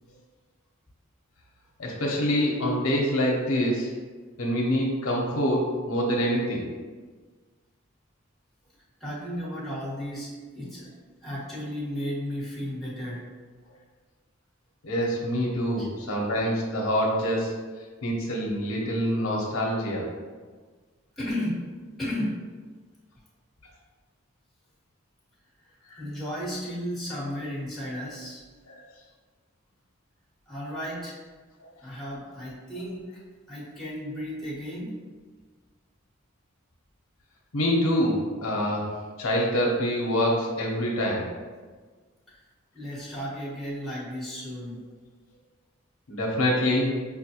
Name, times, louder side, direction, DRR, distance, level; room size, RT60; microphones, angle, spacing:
voice 1, 1.8-3.9 4.4-6.6 14.8-17.5 18.0-20.1 25.9-26.0 37.5-38.8 39.2-41.3 46.1-46.9, equal, 80° left, -2 dB, 0.8 m, -25 dB
voice 2, 9.0-10.9 11.2-13.2 15.8-15.9 21.2-21.7 22.0-22.4 26.0-28.4 30.5-31.2 31.8-33.1 33.5-35.0 42.3-42.4 42.7-44.8, equal, ahead, -9 dB, 1.2 m, -34 dB
5.6 x 2.2 x 2.8 m, 1.4 s
head